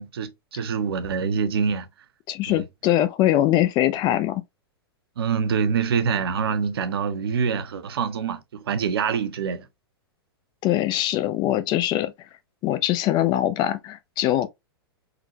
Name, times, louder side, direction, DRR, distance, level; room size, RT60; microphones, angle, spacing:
voice 1, 0.0-1.9 2.5-2.6 5.2-9.7, right 6 dB, 70° right, 0.7 m, -25 dB
voice 2, 2.3-4.4 10.6-12.1 12.6-14.5, left 13 dB, 35° left, 0.5 m, -22 dB
3.8 x 2.2 x 2.7 m
hypercardioid pair, 105°, 13 cm